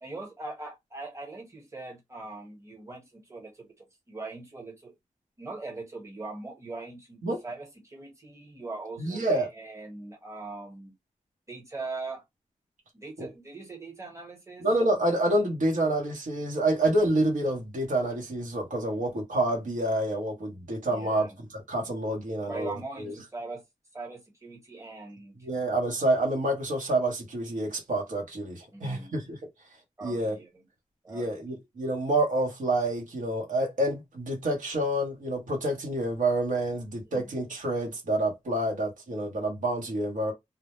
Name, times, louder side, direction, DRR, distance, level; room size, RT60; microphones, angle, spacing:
voice 1, 0.0-4.9 5.4-10.9 11.5-12.2 12.9-14.7 19.1-19.2 20.9-21.4 21.8-21.9 22.5-23.6 23.9-25.5 28.7-29.4 30.0-30.6 31.0-31.3 37.1-37.2, right 3 dB, 20° right, 1.0 m, -41 dB
voice 2, 9.0-9.5 13.2-13.3 14.6-21.3 21.5-23.1 25.4-29.4 30.0-30.4 31.1-40.3, right 1 dB, 85° right, 0.9 m, -28 dB
2.1 x 2.0 x 2.9 m
wide cardioid pair, 75°, 13 cm